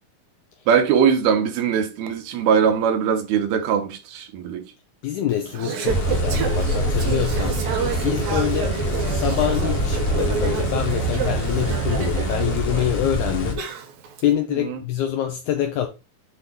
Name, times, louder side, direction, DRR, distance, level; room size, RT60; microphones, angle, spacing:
voice 1, 0.7-4.6 14.6-14.8, right 7 dB, 90° right, 3.0 m, -21 dB
voice 2, 5.0-7.6 8.0-8.8 9.1-13.7 14.2-15.9, left 10 dB, 80° left, 1.8 m, -25 dB
Conversation / Chatter, 5.3-14.2, right 6 dB, 75° right, 3.0 m, -29 dB
sound 1, 5.9-13.5, right 1 dB, 50° left, 1.8 m, -24 dB
8.1 x 3.0 x 5.2 m
omnidirectional pair, 4.2 m